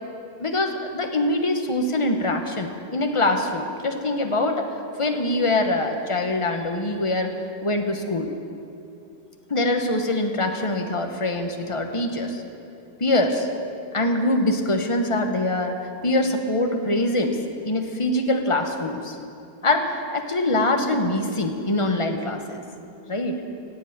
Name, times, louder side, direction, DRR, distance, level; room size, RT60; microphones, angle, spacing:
voice 1, 0.4-4.7 5.0-8.3 9.5-12.4 13.0-13.5 13.9-15.8 16.0-17.4 17.6-19.2 19.6-22.6 23.1-23.4, left 2 dB, 25° left, 4 dB, 0.9 m, -24 dB
16.5 x 8.2 x 8.9 m, 2.7 s
omnidirectional pair, 1.8 m